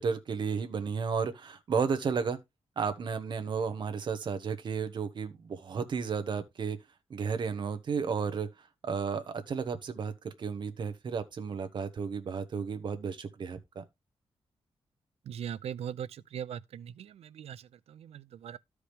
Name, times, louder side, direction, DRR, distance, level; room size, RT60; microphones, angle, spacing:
voice 1, 0.0-2.4 2.8-6.8 7.1-8.5 8.8-13.8, right 5 dB, 50° right, 1.1 m, -33 dB
voice 2, 15.3-18.6, right 9 dB, 90° right, 0.5 m, -40 dB
13.0 x 4.9 x 3.3 m
wide cardioid pair, 170°, 10 cm